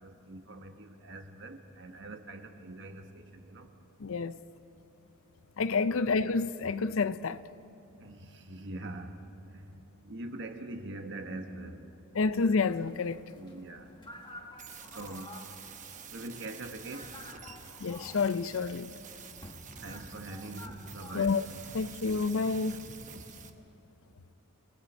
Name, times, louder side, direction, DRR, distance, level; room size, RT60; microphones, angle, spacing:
voice 1, 0.0-3.7 6.0-6.1 8.0-9.2 9.5-11.8 13.3-13.9 14.9-15.3 16.1-17.1 19.8-21.3 23.1-23.2, right 2 dB, 55° right, 1.4 m, -43 dB
voice 2, 4.0-4.4 5.6-7.4 12.1-13.2 17.8-18.9 21.1-21.5 21.7-22.8, left 4 dB, 60° left, 0.5 m, -29 dB
sound 1, 12.3-23.5, left 1 dB, 20° left, 1.4 m, -51 dB
sound 2, 14.6-23.5, right 7 dB, 35° right, 0.9 m, -49 dB
30.0 x 20.0 x 4.4 m
head